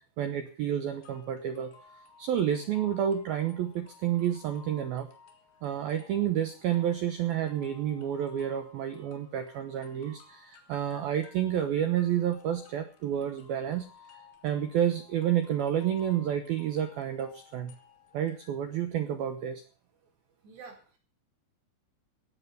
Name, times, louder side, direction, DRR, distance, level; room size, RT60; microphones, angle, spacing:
voice 1, 0.2-1.7 2.2-5.1 5.6-13.9 14.1-17.7 18.1-19.6, right 10 dB, 80° right, 9 dB, 2.2 m, -30 dB
sound 1, 1.0-19.0, left 6 dB, 55° left, 4.2 m, -57 dB
voice 2, 20.4-21.0, right 5 dB, 60° right, 2 dB, 6.2 m, -48 dB
18.0 x 8.0 x 6.7 m, 0.41 s
omnidirectional pair, 5.7 m